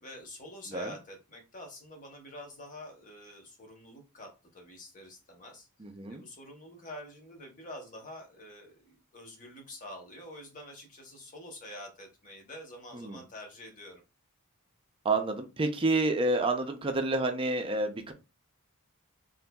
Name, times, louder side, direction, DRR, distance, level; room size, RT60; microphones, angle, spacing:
voice 1, 0.0-5.7 6.1-14.0, left 1 dB, 35° left, 0.8 m, -47 dB
voice 2, 5.8-6.2 12.9-13.2 15.0-18.1, right 2 dB, 25° right, 0.4 m, -29 dB
3.8 x 2.6 x 2.2 m
head